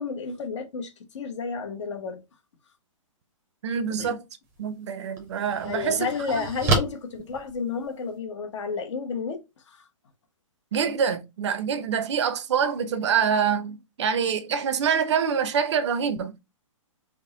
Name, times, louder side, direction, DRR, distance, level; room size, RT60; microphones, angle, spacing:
voice 1, 0.0-2.2 4.0-4.2 5.6-9.4 9.7-9.8, left 5 dB, 60° left, 0.9 m, -31 dB
voice 2, 3.6-4.2 4.6-6.4 10.7-16.4, right 7 dB, 55° right, 0.6 m, -26 dB
sound 1, 4.4-4.6 5.2-8.2, right 2 dB, 15° right, 0.6 m, -29 dB
3.5 x 2.0 x 3.7 m
hypercardioid pair, 160°, 17 cm